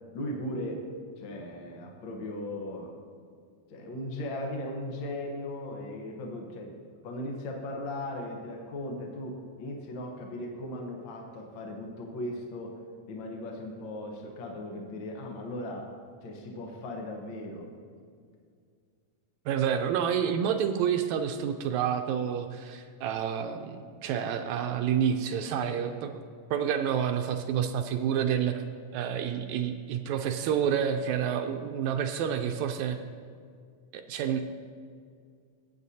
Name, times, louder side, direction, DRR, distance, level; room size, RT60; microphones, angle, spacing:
voice 1, 0.1-0.8 1.2-2.9 3.7-6.7 7.0-12.7 13.1-15.9 16.2-17.7, left 1 dB, 60° left, 1 dB, 1.4 m, -37 dB
voice 2, 19.5-26.1 26.5-28.6 28.9-33.0 33.9-34.5, right 8 dB, 80° right, 6 dB, 1.8 m, -29 dB
16.5 x 8.8 x 2.7 m, 2.1 s
omnidirectional pair, 3.4 m